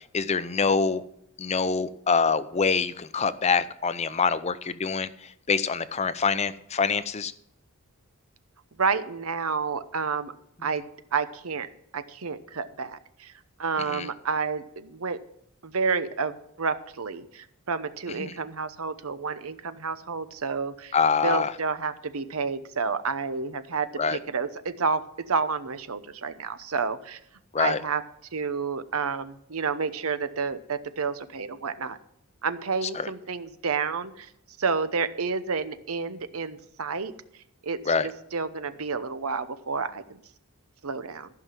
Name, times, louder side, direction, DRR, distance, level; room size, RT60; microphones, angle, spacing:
voice 1, 0.1-1.0 1.4-5.1 5.5-7.3 13.9-14.1 18.2-18.3 20.9-21.5 24.0-24.2 27.5-27.8 33.0-33.1 37.9-38.1, left 5 dB, 30° left, 14 dB, 0.6 m, -25 dB
voice 2, 8.8-10.3 10.6-11.7 11.9-13.3 13.6-15.2 15.6-20.9 21.2-25.0 25.3-27.2 27.6-28.0 28.3-32.0 32.4-34.3 34.6-37.1 37.6-40.2 40.8-41.3, right 5 dB, 75° right, 12 dB, 0.9 m, -30 dB
14.5 x 5.9 x 7.4 m, 0.74 s
head